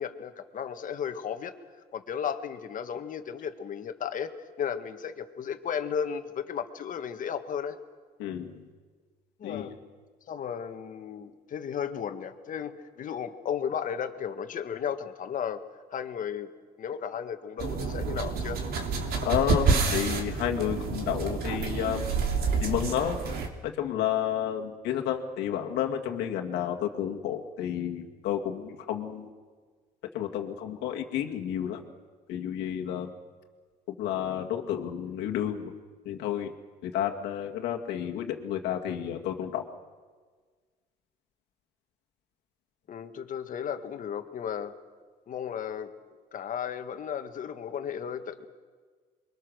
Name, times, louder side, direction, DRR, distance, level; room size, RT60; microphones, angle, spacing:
voice 1, 0.0-1.5 1.9-4.3 4.6-7.8 9.4-9.8 10.3-15.6 15.9-16.5 16.8-18.6 42.9-44.7 45.3-45.9 46.3-48.5, left 8 dB, 50° left, 8 dB, 1.7 m, -34 dB
voice 2, 8.2-8.6 9.4-9.7 19.2-22.1 22.6-23.2 23.6-29.3 30.1-31.8 32.3-33.1 34.0-35.7 36.1-36.5 36.8-39.6, left 10 dB, 85° left, 2 dB, 2.0 m, -31 dB
sound 1, 17.6-23.5, right 5 dB, 65° right, 2.9 m, -28 dB
27.5 x 23.0 x 6.5 m, 1.5 s
cardioid pair, 110°, 17 cm